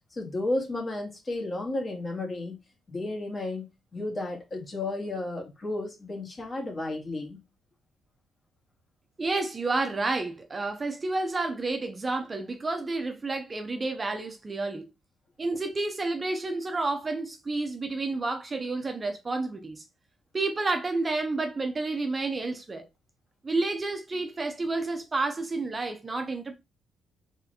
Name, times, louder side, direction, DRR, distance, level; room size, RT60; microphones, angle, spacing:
voice 1, 0.1-2.6 2.9-3.7 3.9-7.4, left 2 dB, 35° left, 1.9 m, -32 dB
voice 2, 9.2-14.9 15.4-19.8 20.3-22.9 23.4-26.5, right 3 dB, 30° right, 0.7 m, -30 dB
3.9 x 3.2 x 2.9 m
cardioid pair, 90°, 0 cm